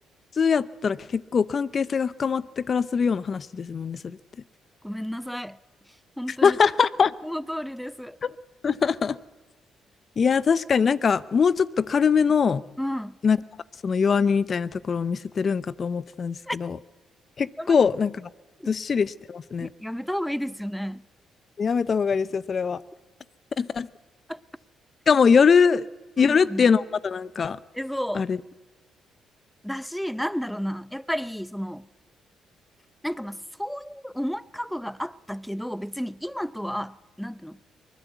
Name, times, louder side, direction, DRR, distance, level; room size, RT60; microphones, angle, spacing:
voice 1, 0.4-4.2 6.3-7.1 8.2-8.3 8.6-9.2 10.2-12.6 13.2-13.4 13.8-16.8 17.4-18.3 18.7-19.7 21.6-22.8 23.6-23.9 25.1-25.8 26.2-27.6 28.1-28.4, left 6 dB, 45° left, 0.7 m, -22 dB
voice 2, 4.8-5.6 6.2-6.6 7.2-8.2 12.8-13.1 16.5-16.6 17.6-17.7 18.6-18.7 19.6-21.0 24.3-24.4 26.2-26.7 27.7-28.3 29.6-31.9 33.0-37.6, equal, ahead, 0.6 m, -32 dB
23.5 x 20.0 x 8.2 m
cardioid pair, 90°, 0 cm